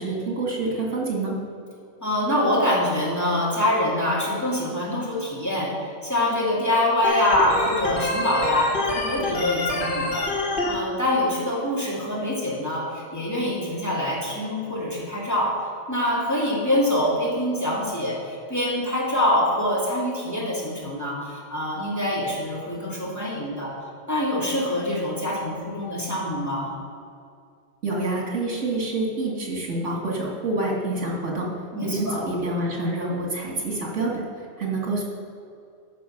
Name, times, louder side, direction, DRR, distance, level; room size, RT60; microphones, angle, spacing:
voice 1, 0.0-1.4 27.8-31.5 31.8-34.2 34.6-35.0, right 2 dB, 75° right, -2 dB, 2.4 m, -27 dB
voice 2, 2.0-5.7 6.0-10.3 10.6-15.5 15.9-23.7 24.1-26.7 31.7-32.2, left 1 dB, 15° left, -7 dB, 2.4 m, -25 dB
Organ, 7.0-10.7, left 2 dB, 45° left, 1.5 m, -26 dB
13.5 x 5.4 x 5.8 m, 2.5 s
omnidirectional pair, 1.2 m